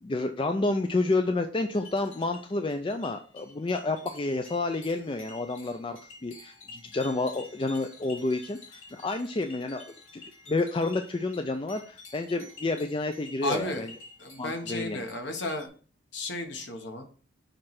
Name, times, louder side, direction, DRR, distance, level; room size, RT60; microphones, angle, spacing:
voice 1, 0.0-10.2 10.5-13.9 14.4-15.0, left 2 dB, 25° left, 6 dB, 0.4 m, -30 dB
sound 1, 1.7-15.7, left 3 dB, 80° left, 2.7 m, -50 dB
voice 2, 13.4-13.9 14.2-15.7 16.1-17.1, left 1 dB, 60° left, 4 dB, 1.2 m, -33 dB
6.5 x 3.2 x 5.8 m, 0.40 s
head